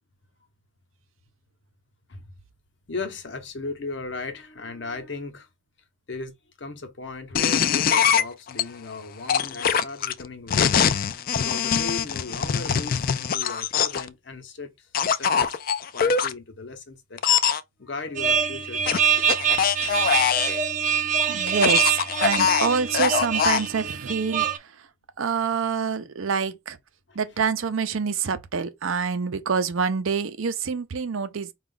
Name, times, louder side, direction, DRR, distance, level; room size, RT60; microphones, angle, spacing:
voice 1, 2.9-5.5 6.1-10.8 11.4-15.6 15.9-17.2 17.8-19.4 27.1-27.2, left 3 dB, 65° left, 0.8 m, -37 dB
sound 1, 7.4-8.6 9.3-14.1 14.9-16.3 17.2-17.6 18.9-20.6 21.5-23.7, left 7 dB, 45° left, 0.3 m, -23 dB
sound 2, 18.1-24.6, right 7 dB, 40° right, 0.5 m, -25 dB
voice 2, 21.3-24.7 25.2-26.8 27.2-31.5, right 5 dB, 85° right, 0.6 m, -26 dB
4.8 x 2.4 x 3.7 m
head